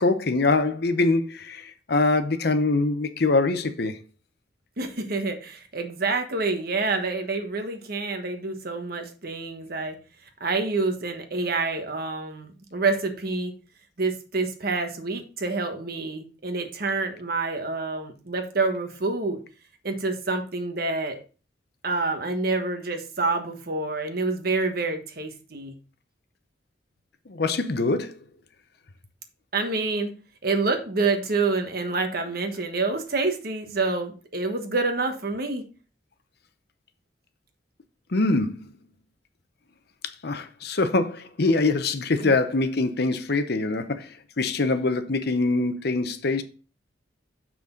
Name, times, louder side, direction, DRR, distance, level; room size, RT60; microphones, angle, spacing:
voice 1, 0.0-4.0 27.3-28.1 38.1-38.7 40.2-46.4, left 3 dB, 60° left, 0.8 m, -24 dB
voice 2, 4.8-10.0 10.4-13.5 14.0-19.4 19.8-21.2 21.8-25.7 29.5-30.1 30.4-35.6 42.2-42.3, right 3 dB, 55° right, 1.3 m, -27 dB
6.7 x 6.0 x 3.8 m
head